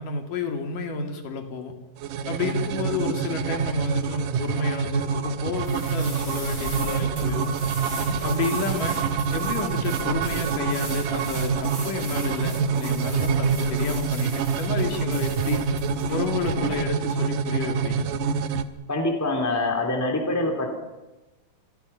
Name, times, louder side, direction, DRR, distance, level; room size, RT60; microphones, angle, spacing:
voice 1, 0.0-1.7 2.3-7.5 8.2-9.0 9.3-15.6 16.1-18.1, left 4 dB, 90° left, 4 dB, 4.1 m, -30 dB
sound 1, 2.0-18.7, right 6 dB, 85° right, 2.6 m, -26 dB
sound 2, 5.6-16.8, right 1 dB, 45° right, 8.7 m, -38 dB
voice 2, 18.9-20.7, left 2 dB, 5° left, 2 dB, 2.8 m, -25 dB
27.0 x 23.0 x 5.7 m, 1.0 s
omnidirectional pair, 3.7 m